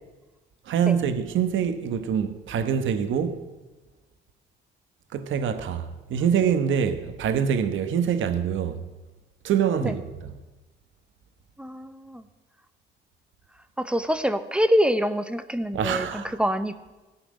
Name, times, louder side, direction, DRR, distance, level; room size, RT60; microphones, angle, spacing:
voice 1, 0.7-3.4 5.1-8.8 9.4-10.3 15.7-16.4, right 8 dB, 75° right, 1.2 m, -25 dB
voice 2, 11.6-12.2 13.8-16.9, equal, 5° right, 0.9 m, -25 dB
17.0 x 6.0 x 9.7 m
cardioid pair, 90°, 20 cm